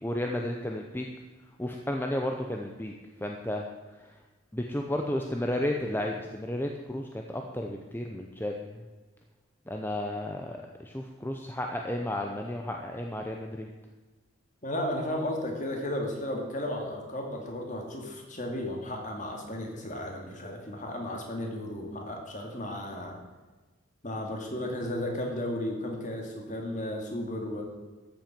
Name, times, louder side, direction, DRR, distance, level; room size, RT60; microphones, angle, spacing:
voice 1, 0.0-1.1 1.6-2.9 3.2-3.6 4.5-8.8 9.7-13.7, left 1 dB, 10° left, 2 dB, 0.7 m, -33 dB
voice 2, 14.6-23.2 24.0-27.6, left 1 dB, 35° left, 1 dB, 2.3 m, -34 dB
13.0 x 7.6 x 7.5 m, 1.3 s
head